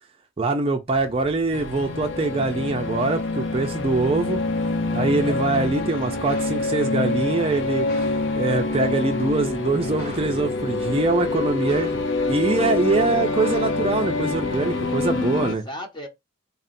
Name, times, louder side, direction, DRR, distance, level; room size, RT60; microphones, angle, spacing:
voice 1, 0.4-4.4 4.9-7.9 8.4-12.0 12.3-15.6, right 3 dB, 30° right, 0.5 m, -23 dB
sound 1, 0.9-15.2, left 1 dB, 50° left, 2.0 m, -42 dB
sound 2, 1.5-15.6, left 3 dB, 70° left, 0.5 m, -26 dB
voice 2, 5.7-6.3 15.3-16.1, equal, 25° left, 1.0 m, -37 dB
3.7 x 2.4 x 4.2 m
head